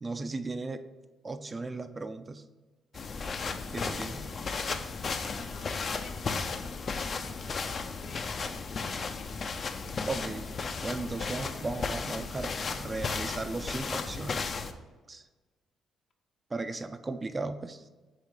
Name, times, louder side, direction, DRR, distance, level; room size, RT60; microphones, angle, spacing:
voice 1, 0.0-0.8 1.2-2.4 3.3-4.3 10.0-10.5 10.8-14.5 15.1-15.2 16.5-17.8, right 3 dB, 25° right, 9 dB, 0.4 m, -36 dB
sound 1, 2.9-14.7, left 4 dB, 45° left, 0.6 m, -35 dB
voice 2, 5.2-9.5, left 4 dB, 65° left, 3 dB, 1.1 m, -50 dB
8.2 x 3.2 x 4.7 m, 1.3 s
cardioid pair, 90°, 0 cm